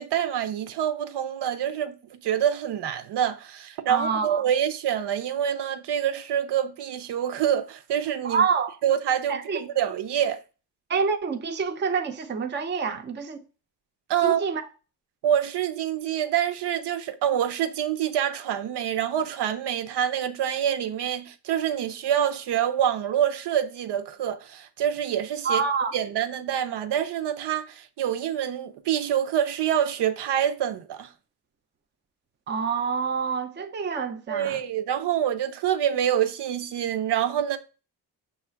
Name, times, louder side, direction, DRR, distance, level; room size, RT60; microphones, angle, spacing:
voice 1, 0.0-8.4 8.8-10.4 14.1-14.4 15.2-25.6 25.9-31.1 34.3-37.6, right 10 dB, 80° right, 0.7 m, -26 dB
voice 2, 3.9-4.4 8.2-8.8 9.3-9.6 10.9-13.4 14.2-14.6 25.4-25.9 32.5-34.6, right 5 dB, 25° right, 0.5 m, -27 dB
7.0 x 2.4 x 5.5 m
wide cardioid pair, 165°, 40 cm